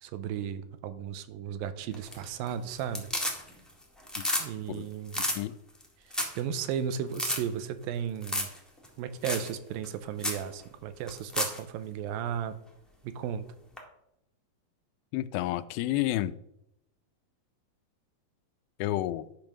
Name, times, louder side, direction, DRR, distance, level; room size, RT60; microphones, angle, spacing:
voice 1, 0.0-3.1 4.4-5.2 6.4-8.5 9.0-12.6 13.0-13.5, right 8 dB, 90° right, 12 dB, 2.4 m, -35 dB
sound 1, 1.9-2.5 2.8-3.7 4.0-4.5 4.7-4.8 5.1-5.4 5.8-5.9 6.1-6.4 6.7-6.8 7.1-7.4 8.2-8.6 8.8-8.9 9.2-9.5 9.8-9.9 10.2-10.4 11.1-11.6 13.8-13.9, left 1 dB, ahead, 0.4 m, -31 dB
voice 2, 5.2-5.5 15.1-16.3 18.8-19.3, left 15 dB, 90° left, 14 dB, 2.4 m, -30 dB
10.5 x 5.2 x 6.1 m, 0.82 s
omnidirectional pair, 4.1 m